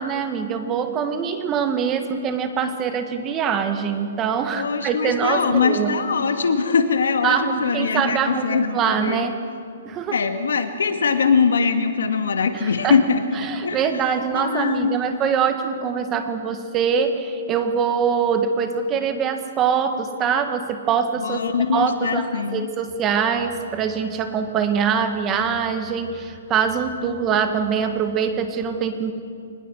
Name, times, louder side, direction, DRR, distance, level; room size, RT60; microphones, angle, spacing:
voice 1, 0.0-5.9 7.2-9.3 9.8-10.2 12.5-13.0 13.4-21.4 21.7-29.1, right 7 dB, 20° right, 8 dB, 1.6 m, -23 dB
voice 2, 4.5-9.3 10.1-13.8 14.3-15.0 21.2-22.7, left 5 dB, 85° left, 7 dB, 2.0 m, -22 dB
23.0 x 20.0 x 6.4 m, 2.4 s
hypercardioid pair, 150°, 0 cm